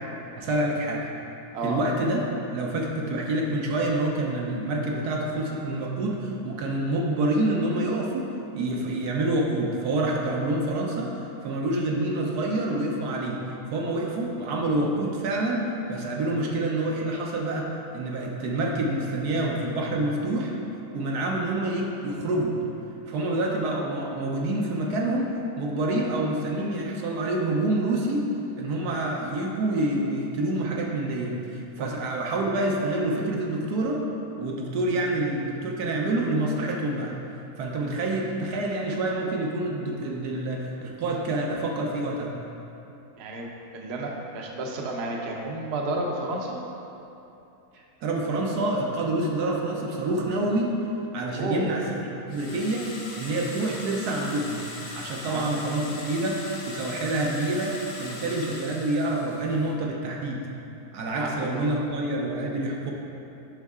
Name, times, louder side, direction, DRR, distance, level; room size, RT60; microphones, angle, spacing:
voice 1, 0.4-1.1 1.6-2.2 2.5-13.4 13.7-20.5 20.9-22.6 23.1-28.3 28.6-34.0 34.4-37.1 37.6-42.3 48.0-50.7 51.1-52.0 52.3-52.9 53.2-54.6 54.9-60.5 60.9-62.9, right 2 dB, 85° right, -1 dB, 1.4 m, -27 dB
voice 2, 43.2-46.6 51.3-51.8 55.3-55.6 61.1-61.7, right 2 dB, 55° right, 0 dB, 0.8 m, -31 dB
sound 1, 52.3-59.6, left 2 dB, 80° left, 1.5 m, -40 dB
7.4 x 5.4 x 3.6 m, 2.9 s
omnidirectional pair, 1.6 m